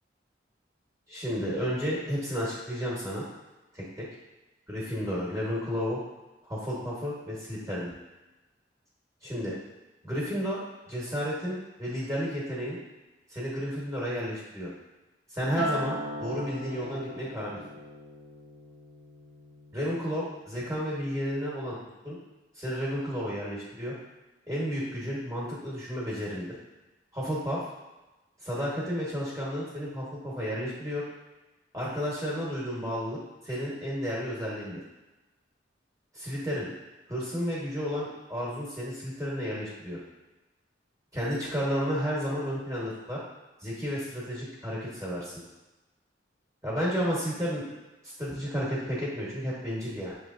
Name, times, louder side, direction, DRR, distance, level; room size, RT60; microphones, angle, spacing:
voice 1, 1.1-3.2 3.7-4.0 4.7-6.0 6.4-7.9 9.2-9.5 10.0-10.6 10.9-12.8 13.3-14.7 15.3-17.6 19.7-21.8 22.0-22.2 22.6-23.9 24.5-26.5 27.1-27.6 28.4-31.0 31.7-33.2 33.4-34.8 36.2-36.7 37.1-40.0 41.1-43.2 43.6-45.3 46.6-47.7 48.0-50.1, equal, 15° right, -7 dB, 1.2 m, -32 dB
Acoustic guitar, 15.6-20.0 20.4-20.8, right 1 dB, 70° right, 0.8 m, -38 dB
6.3 x 3.1 x 2.5 m, 1.1 s
head